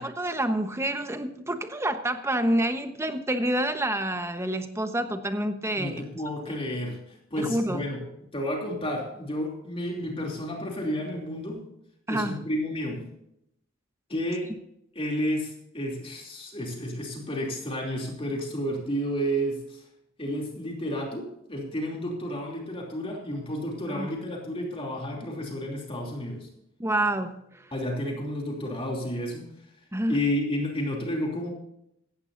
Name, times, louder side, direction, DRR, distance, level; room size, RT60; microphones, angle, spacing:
voice 1, 0.0-6.0 7.4-7.8 12.1-12.3 23.9-24.1 26.8-27.4 29.9-30.1, right 1 dB, 15° right, 8 dB, 1.1 m, -28 dB
voice 2, 5.8-8.0 8.3-11.7 12.1-13.1 14.1-14.5 14.9-19.8 20.2-26.5 27.7-29.5 30.1-31.5, equal, 25° left, 0 dB, 2.9 m, -31 dB
17.0 x 14.5 x 2.6 m, 0.78 s
head